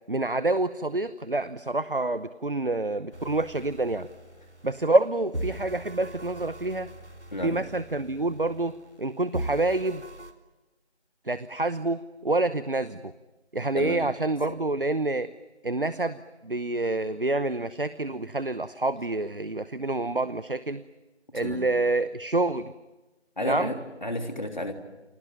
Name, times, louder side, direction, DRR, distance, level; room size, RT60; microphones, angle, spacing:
voice 1, 0.1-4.1 4.6-6.9 7.4-10.0 11.2-13.1 13.5-15.3 15.6-20.8 21.3-22.7 23.4-23.7, right 2 dB, 50° right, 15 dB, 0.9 m, -27 dB
sound 1, 3.1-5.0 5.3-9.0 9.3-10.3, right 1 dB, 85° right, 3.5 m, -40 dB
voice 2, 7.3-7.6 13.7-14.0 21.3-21.7 23.4-24.7, left 1 dB, 40° left, 5 dB, 3.2 m, -32 dB
29.5 x 22.0 x 9.1 m, 1.1 s
figure-of-eight pair, 170°, 34 cm